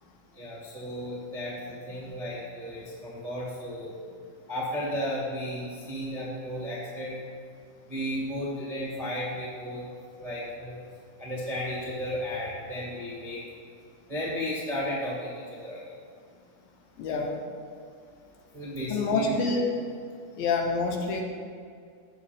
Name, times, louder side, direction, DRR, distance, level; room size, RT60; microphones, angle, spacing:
voice 1, 0.3-3.9 4.5-7.2 7.9-9.8 10.2-10.8 11.2-13.4 14.1-15.9 17.1-17.2 18.5-19.3, equal, 20° right, -7 dB, 1.0 m, -34 dB
voice 2, 17.0-17.3 18.9-19.6 20.4-21.2, left 3 dB, 75° left, 3 dB, 2.5 m, -27 dB
16.5 x 6.8 x 3.5 m, 2.3 s
omnidirectional pair, 4.5 m